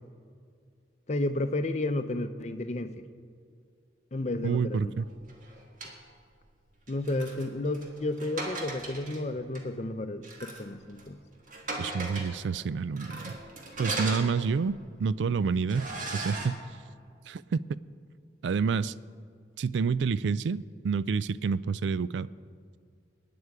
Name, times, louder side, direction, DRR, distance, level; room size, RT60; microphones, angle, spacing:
voice 1, 1.1-3.0 4.1-4.9 6.9-11.2, left 2 dB, 40° left, 9 dB, 0.6 m, -32 dB
voice 2, 4.4-5.1 11.8-13.4 13.8-16.6 17.3-17.6 18.4-18.9 19.6-22.3, right 5 dB, 80° right, 18 dB, 0.3 m, -28 dB
sound 1, 5.2-6.0 6.9-9.2 9.5-9.6 10.2-10.7 11.0-11.1 11.5-12.4 13.0-14.8 15.2-15.3 15.7-16.5, right 2 dB, 45° right, 1.7 m, -38 dB
21.0 x 9.6 x 4.8 m, 2.2 s
head